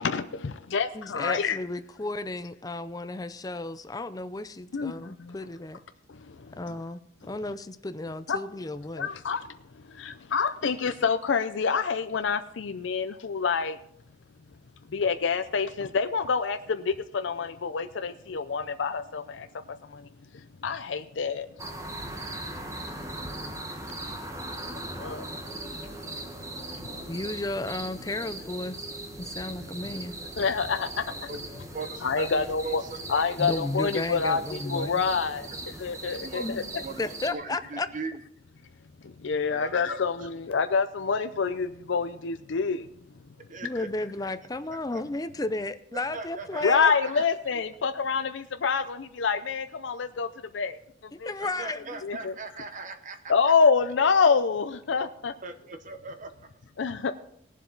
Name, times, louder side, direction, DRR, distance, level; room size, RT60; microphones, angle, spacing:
voice 1, 0.0-1.6 4.7-5.4 6.1-6.7 8.3-8.4 9.0-13.8 14.9-20.1 20.3-21.5 23.2-23.3 25.0-25.3 26.5-26.6 27.0-27.1 30.4-31.3 32.0-32.8 33.1-36.6 39.0-42.9 46.6-50.3 50.5-50.8 51.2-51.3 52.0-52.3 53.3-55.3 56.8-57.1, left 5 dB, 70° left, 0.5 m, -27 dB
voice 2, 0.9-5.8 6.6-7.0 7.3-9.1 27.1-28.8 29.2-30.1 33.4-35.0 36.4-36.7 37.0-37.9 43.6-46.9 51.1-52.0, left 2 dB, 20° left, 0.5 m, -33 dB
sound 1, 21.6-37.3, right 1 dB, 15° right, 1.2 m, -39 dB
voice 3, 31.7-33.0 35.6-35.7 36.2-36.5 36.8-37.0 37.3-38.2 39.5-40.0 43.5-44.1 44.9-45.0 45.9-47.2 51.4-53.2 55.4-56.3, right 3 dB, 40° right, 0.9 m, -39 dB
18.5 x 7.4 x 4.0 m
head